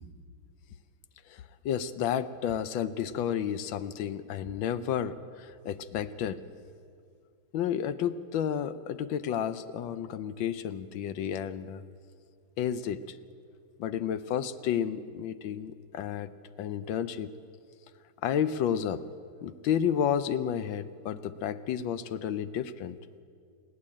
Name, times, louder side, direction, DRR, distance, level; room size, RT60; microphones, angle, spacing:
voice 1, 1.3-6.4 7.5-11.8 12.6-13.2 13.8-16.3 16.6-17.3 18.2-19.0 19.4-23.0, left 9 dB, 80° left, 12 dB, 1.5 m, -31 dB
28.5 x 11.0 x 8.7 m, 2.2 s
omnidirectional pair, 2.1 m